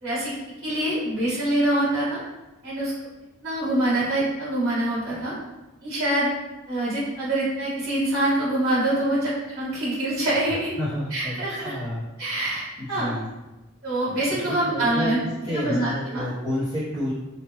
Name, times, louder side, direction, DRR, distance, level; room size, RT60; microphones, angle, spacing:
voice 1, 0.0-0.3 0.6-2.2 2.6-2.9 3.4-5.3 5.8-6.3 6.7-10.7 11.1-11.8 12.2-13.1 13.8-15.2 15.5-16.3, right 1 dB, 50° right, -11 dB, 1.3 m, -25 dB
voice 2, 10.8-11.4 11.6-12.0 12.8-13.3 14.3-15.1 15.4-17.1, left 1 dB, 20° right, -15 dB, 1.0 m, -29 dB
3.1 x 2.5 x 3.1 m, 1.1 s
head